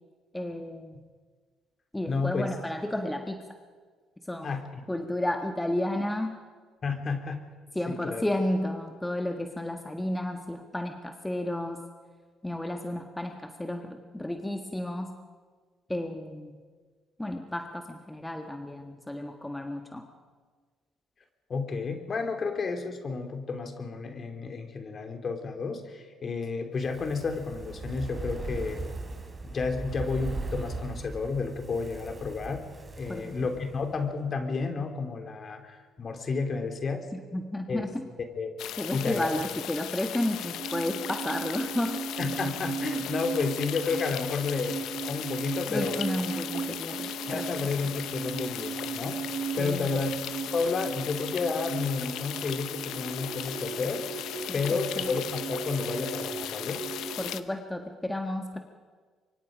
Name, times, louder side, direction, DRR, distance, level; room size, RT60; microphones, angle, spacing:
voice 1, 0.3-1.0 1.9-3.4 4.3-4.6 4.9-6.4 7.7-11.9 12.4-15.1 15.9-16.6 17.2-20.1 33.1-33.5 37.1-38.0 38.8-42.0 45.7-47.7 49.6-50.0 54.5-54.6 55.0-55.1 57.2-58.6, left 1 dB, 10° left, 5 dB, 1.5 m, -32 dB
voice 2, 2.1-2.5 4.4-4.8 6.8-7.4 7.9-8.2 21.5-28.8 29.4-32.7 33.0-37.1 37.7-37.8 38.4-38.5 38.9-39.3 42.2-46.1 47.3-50.1 50.5-54.0 54.5-56.8, left 4 dB, 45° left, 6 dB, 3.0 m, -31 dB
Fire, 26.7-34.1 34.4-34.5, right 3 dB, 25° right, 3.2 m, -39 dB
sound 1, 38.6-57.4, left 12 dB, 80° left, 0.8 m, -37 dB
sound 2, 40.2-57.4, right 6 dB, 50° right, 1.2 m, -37 dB
25.0 x 23.5 x 5.2 m, 1.5 s
cardioid pair, 80°, 0 cm